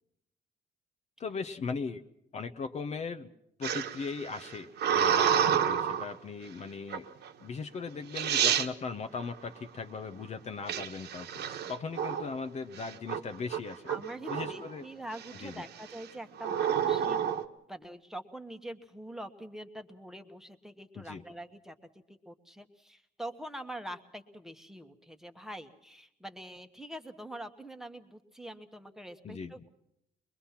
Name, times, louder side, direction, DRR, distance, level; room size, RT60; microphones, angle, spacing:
voice 1, 1.2-2.0 2.3-3.3 3.6-7.1 7.4-13.9 14.3-14.9 15.4-15.6 21.0-21.2 29.2-29.5, left 4 dB, 40° left, 8 dB, 0.9 m, -38 dB
sound 1, 3.6-6.1 6.9-7.3 7.9-8.0 8.1-8.7 10.7-12.3 12.8-13.2 13.5-14.7 15.2-15.6 16.4-17.4, right 8 dB, 75° right, 1.4 m, -29 dB
voice 2, 13.9-17.3 17.7-21.8 22.2-29.7, right 1 dB, 5° right, 6 dB, 1.3 m, -44 dB
23.0 x 22.5 x 5.8 m, 0.79 s
cardioid pair, 145°, 17 cm